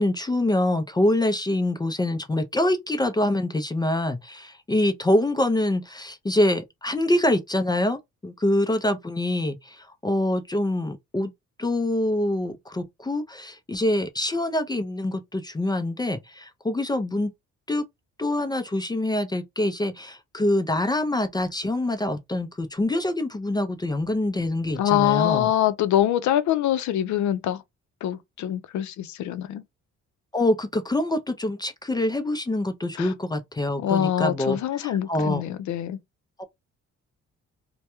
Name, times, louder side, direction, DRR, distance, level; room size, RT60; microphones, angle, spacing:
voice 1, 0.0-11.3 11.6-17.3 17.7-17.8 18.2-25.5 30.3-35.4 36.4-36.5, left 1 dB, 15° left, 0.4 m, -25 dB
voice 2, 24.8-27.6 28.0-29.6 33.0-33.1 33.8-36.0, left 11 dB, 70° left, 0.5 m, -24 dB
2.2 x 2.1 x 2.8 m
cardioid pair, 90°, 30 cm